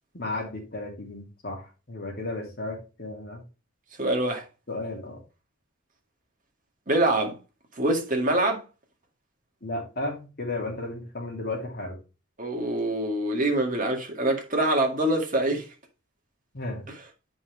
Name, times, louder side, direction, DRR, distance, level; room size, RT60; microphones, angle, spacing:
voice 1, 0.1-3.4 4.7-5.2 9.6-12.0 16.5-16.9, left 2 dB, 50° left, 2.7 m, -34 dB
voice 2, 4.0-4.4 6.9-7.3 7.8-8.6 12.4-15.7 16.9-17.0, right 1 dB, 40° right, 2.1 m, -25 dB
8.8 x 5.3 x 3.4 m
head